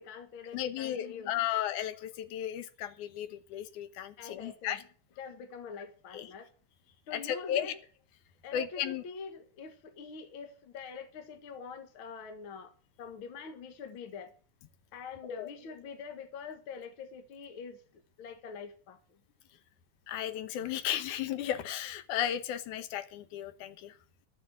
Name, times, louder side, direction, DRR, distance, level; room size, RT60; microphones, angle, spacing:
voice 1, 0.0-1.6 4.2-4.8 5.2-6.5 7.1-7.8 8.4-12.7 13.0-14.3 14.9-17.8 18.2-19.2, left 5 dB, 50° left, 1.8 m, -45 dB
voice 2, 0.5-4.8 6.1-6.3 7.1-7.7 8.5-9.0 15.2-15.5 20.1-24.0, left 11 dB, 70° left, 2.3 m, -34 dB
12.5 x 7.7 x 7.8 m
omnidirectional pair, 3.9 m